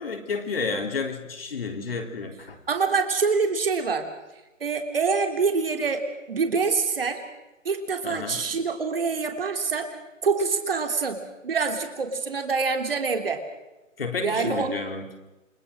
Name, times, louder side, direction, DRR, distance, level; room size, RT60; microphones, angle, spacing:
voice 1, 0.0-2.6 8.0-8.4 14.0-15.3, left 4 dB, 45° left, 4 dB, 4.0 m, -31 dB
voice 2, 2.7-4.1 4.6-7.2 7.7-9.9 10.2-13.4 14.2-14.8, right 4 dB, 45° right, 5 dB, 3.3 m, -25 dB
29.5 x 24.0 x 6.4 m, 1.0 s
figure-of-eight pair, 150°, 39 cm